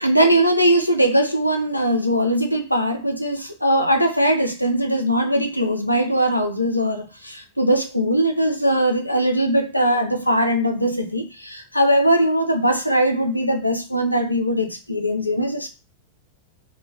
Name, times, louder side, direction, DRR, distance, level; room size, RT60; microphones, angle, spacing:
voice 1, 0.0-15.7, equal, 85° left, 5 dB, 0.4 m, -20 dB
2.2 x 2.1 x 3.8 m, 0.30 s
figure-of-eight pair, 90°, 0 cm